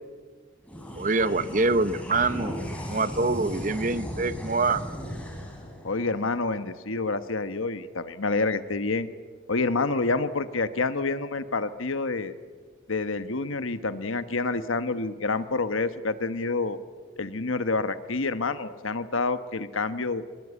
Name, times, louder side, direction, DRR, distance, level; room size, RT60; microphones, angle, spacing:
sound 1, 0.6-7.4, equal, 5° left, 4.1 m, -37 dB
voice 1, 1.0-4.8, right 3 dB, 40° right, 13 dB, 0.9 m, -25 dB
voice 2, 5.8-9.1 9.5-12.3 12.9-16.8 17.2-20.2, left 3 dB, 90° left, 11 dB, 1.2 m, -28 dB
23.5 x 21.5 x 8.3 m, 1.5 s
head